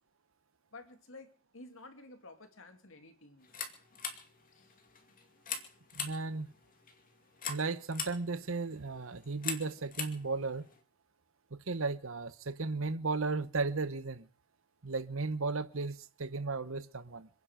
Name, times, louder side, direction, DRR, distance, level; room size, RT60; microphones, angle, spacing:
voice 1, 0.7-3.5 4.5-4.7, left 2 dB, 65° left, 2.6 m, -52 dB
sound 1, 3.4-10.8, left 6 dB, 40° left, 2.5 m, -43 dB
voice 2, 5.9-6.5 7.5-10.6 11.5-14.2 14.8-17.3, right 3 dB, 70° right, 1.0 m, -35 dB
27.0 x 9.8 x 5.1 m
head